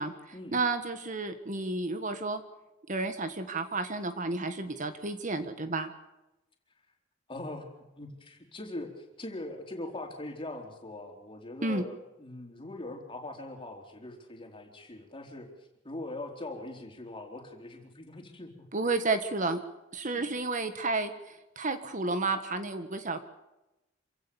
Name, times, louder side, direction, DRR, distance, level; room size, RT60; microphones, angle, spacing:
voice 1, 0.5-2.4 2.9-5.9 11.6-11.8 18.7-19.6 19.9-21.1 21.5-23.2, right 3 dB, 40° right, 9 dB, 1.6 m, -31 dB
voice 2, 7.3-7.7 8.0-15.5 15.8-18.7 20.0-20.2, left 2 dB, 25° left, 2 dB, 4.2 m, -41 dB
27.0 x 16.5 x 7.2 m, 0.94 s
head